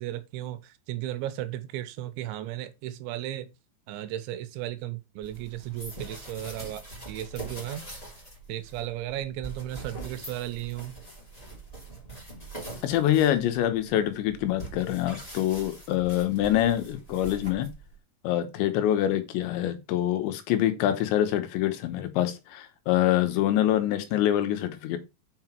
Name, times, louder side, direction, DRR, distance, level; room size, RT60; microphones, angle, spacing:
voice 1, 0.0-3.5 3.9-7.8 8.5-10.9, right 13 dB, 85° right, 3.2 m, -35 dB
sound 1, 5.2-18.0, right 2 dB, 10° left, 1.8 m, -43 dB
voice 2, 12.8-17.7 18.2-25.0, left 12 dB, 80° left, 3.3 m, -25 dB
6.6 x 6.0 x 4.5 m
omnidirectional pair, 5.2 m